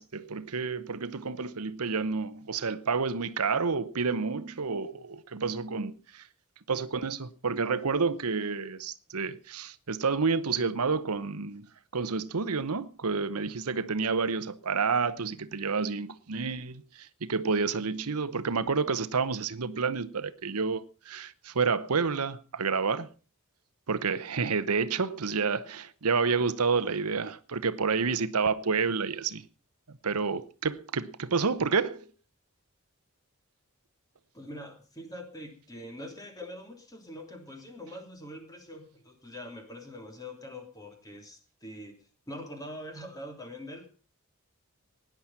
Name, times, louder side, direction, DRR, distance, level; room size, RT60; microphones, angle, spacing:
voice 1, 0.0-6.3 6.7-23.1 23.9-29.4 30.0-32.1, right 5 dB, 85° right, 0.9 m, -29 dB
voice 2, 34.3-42.0 42.3-43.9, left 1 dB, 15° left, 3.3 m, -43 dB
17.0 x 10.5 x 5.8 m
head